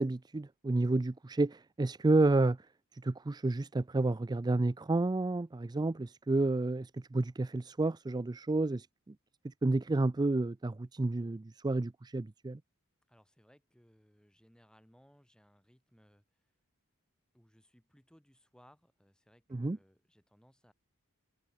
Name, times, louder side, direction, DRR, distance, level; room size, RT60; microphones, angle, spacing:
voice 1, 0.0-2.6 3.0-8.9 9.4-12.6 19.5-19.8, right 2 dB, 20° right, 0.4 m, -30 dB
voice 2, 13.1-16.5 17.3-20.7, equal, 5° left, 6.7 m, -64 dB
head